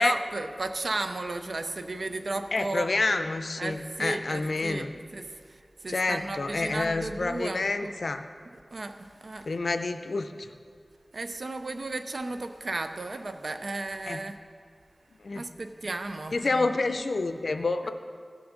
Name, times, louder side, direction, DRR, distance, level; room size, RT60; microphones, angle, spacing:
voice 1, 0.0-2.9 3.6-4.9 5.1-7.9 8.7-9.5 11.1-14.4 15.3-16.7, right 2 dB, 75° right, 8 dB, 0.5 m, -34 dB
voice 2, 2.5-4.9 5.9-8.2 9.5-10.5 14.0-14.2 15.2-15.5 16.3-17.9, left 3 dB, 85° left, 8 dB, 0.5 m, -28 dB
15.5 x 6.1 x 3.7 m, 2.1 s
wide cardioid pair, 65°, 0 cm